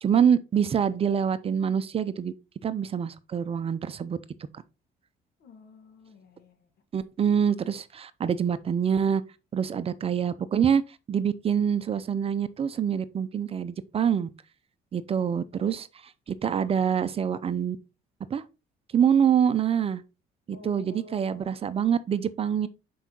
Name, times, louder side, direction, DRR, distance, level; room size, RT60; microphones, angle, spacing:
voice 1, 0.0-2.3 2.6-4.2 4.5-4.6 6.9-9.2 9.5-10.8 11.1-14.3 14.9-17.8 18.3-18.4 18.9-20.0 20.5-22.7, right 8 dB, 35° right, 0.5 m, -25 dB
voice 2, 5.4-6.7 20.5-21.6, left 3 dB, 65° left, 1.4 m, -51 dB
6.0 x 4.6 x 3.8 m
cardioid pair, 110°, 17 cm